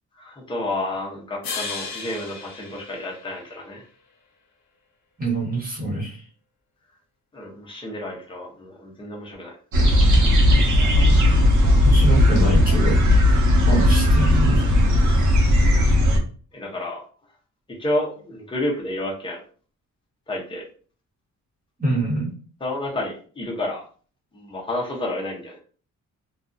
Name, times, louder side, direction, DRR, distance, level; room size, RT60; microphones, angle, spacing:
voice 1, 0.2-3.8 7.3-9.6 16.5-17.0 17.8-19.4 20.3-20.6 22.6-23.8 24.3-25.6, left 1 dB, 15° left, -2 dB, 0.6 m, -30 dB
sound 1, 1.4-3.8, left 4 dB, 65° left, 0.7 m, -35 dB
voice 2, 5.2-6.2 11.8-13.0 13.7-14.7 21.8-22.3, right 1 dB, 30° right, -6 dB, 1.1 m, -25 dB
sound 2, 9.7-16.2, left 1 dB, 75° right, 0.7 m, -16 dB
2.5 x 2.3 x 2.4 m, 0.41 s
wide cardioid pair, 170°, 30 cm